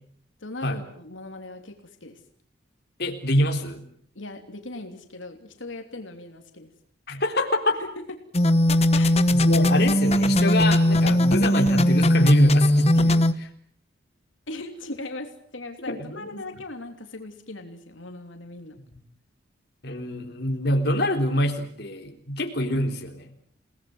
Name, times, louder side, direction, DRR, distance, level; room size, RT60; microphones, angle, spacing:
voice 1, 0.4-2.2 4.1-6.7 7.7-7.9 8.9-9.2 14.5-18.8, left 2 dB, 85° left, 5 dB, 3.2 m, -39 dB
voice 2, 3.0-3.9 7.1-7.8 9.3-13.5 15.9-16.4 19.8-23.3, left 1 dB, 55° left, 3 dB, 3.7 m, -25 dB
sound 1, 8.3-13.3, left 1 dB, 35° left, 1.3 m, -19 dB
29.5 x 19.0 x 8.0 m, 0.62 s
head